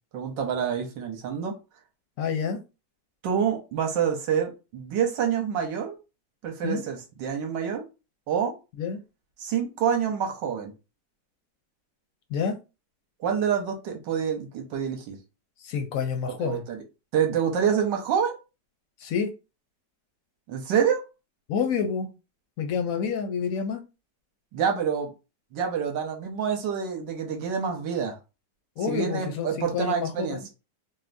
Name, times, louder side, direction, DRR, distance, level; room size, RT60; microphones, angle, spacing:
voice 1, 0.1-1.5 3.2-6.0 6.4-7.9 8.3-8.5 9.4-10.7 13.2-15.2 16.4-16.8 17.1-18.4 20.5-21.0 24.5-25.1 25.5-28.2 28.9-30.5, right 7 dB, 90° right, 1.5 m, -27 dB
voice 2, 2.2-2.6 6.6-6.8 8.8-9.0 12.3-12.6 15.6-16.6 19.0-19.3 21.5-22.1 22.6-23.8 28.8-30.4, left 6 dB, 65° left, 0.9 m, -28 dB
4.1 x 2.2 x 2.6 m
omnidirectional pair, 1.9 m